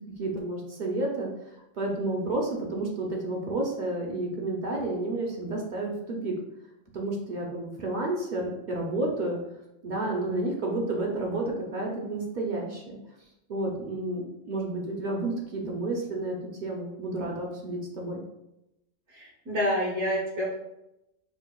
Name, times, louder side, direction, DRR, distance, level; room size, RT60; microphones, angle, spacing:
voice 1, 0.2-1.3 1.8-6.3 6.9-9.4 9.8-13.0 13.5-18.2, right 2 dB, 50° right, -1 dB, 0.6 m, -31 dB
voice 2, 19.1-20.5, equal, 70° right, -4 dB, 1.3 m, -28 dB
5.2 x 2.2 x 2.3 m, 0.88 s
omnidirectional pair, 1.3 m